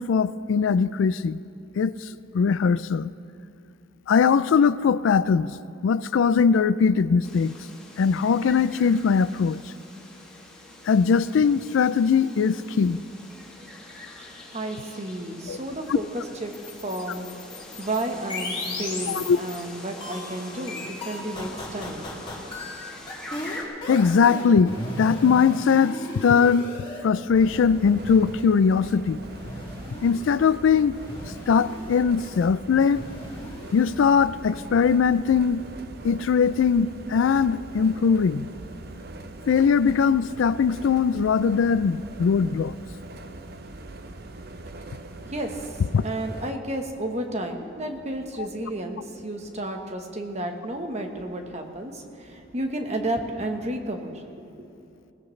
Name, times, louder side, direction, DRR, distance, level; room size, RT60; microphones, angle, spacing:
voice 1, 0.0-1.4 1.8-2.1 2.3-3.1 4.1-5.6 5.8-7.5 8.0-9.6 10.9-13.0 15.5-15.6 15.9-16.0 19.1-19.4 23.9-26.7 27.0-29.2 30.0-31.0 31.5-33.0 33.7-35.6 36.0-38.5 39.5-42.7 45.9-46.0 48.4-48.5, left 6 dB, 70° left, 16 dB, 0.3 m, -21 dB
sound 1, 7.2-23.6, left 1 dB, 5° left, 2.2 m, -44 dB
voice 2, 14.2-22.1 43.4-43.5 44.8-44.9 45.2-54.2 54.6-54.7, right 1 dB, 35° right, 4 dB, 1.2 m, -32 dB
sound 2, 16.5-19.6 20.0-27.0 27.3-28.4 29.2-30.3 30.9-32.0 32.8-33.9, left 2 dB, 25° left, 2.5 m, -36 dB
sound 3, 27.3-46.5, right 2 dB, 50° right, 0.7 m, -41 dB
21.0 x 17.0 x 3.2 m, 2.7 s
head